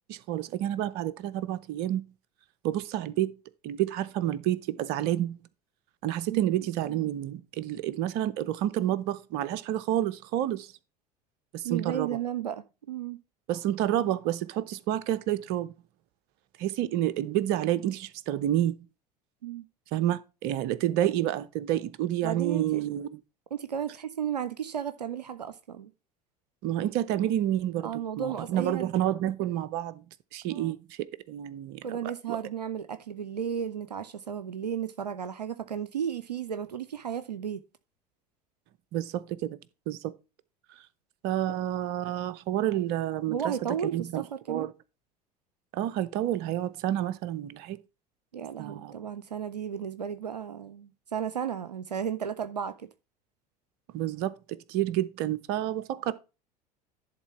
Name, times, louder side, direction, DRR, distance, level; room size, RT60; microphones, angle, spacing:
voice 1, 0.1-2.0 2.6-3.3 3.6-5.4 6.0-10.7 11.5-12.2 13.5-15.7 16.6-18.9 19.9-23.2 26.6-27.9 28.2-30.0 30.3-31.8 32.3-32.4 38.9-39.6 39.9-40.1 41.2-44.7 45.7-47.8 48.6-48.9 53.9-56.1, right 12 dB, 55° right, 0.7 m, -29 dB
voice 2, 11.6-13.2 19.4-19.7 22.2-22.8 23.5-25.9 27.2-27.3 27.8-28.9 30.5-30.7 31.8-37.6 41.5-41.6 43.3-44.7 48.3-52.9, right 8 dB, 90° right, 0.5 m, -34 dB
11.0 x 3.6 x 5.7 m
figure-of-eight pair, 70°, 20 cm